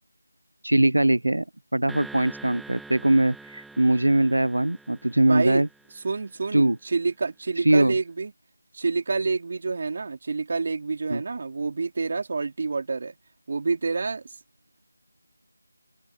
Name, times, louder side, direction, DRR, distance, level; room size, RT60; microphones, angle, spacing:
voice 1, 0.6-1.4 1.7-5.7 6.5-6.8 7.6-7.9 11.1-11.2, right 1 dB, 85° right, 0.4 m, -21 dB
sound 1, 1.9-6.4, right 3 dB, ahead, 1.1 m, -45 dB
voice 2, 5.3-5.6 6.0-8.3 8.7-13.1 13.5-14.2, right 4 dB, 40° right, 3.2 m, -28 dB
open air
figure-of-eight pair, 170°, 0 cm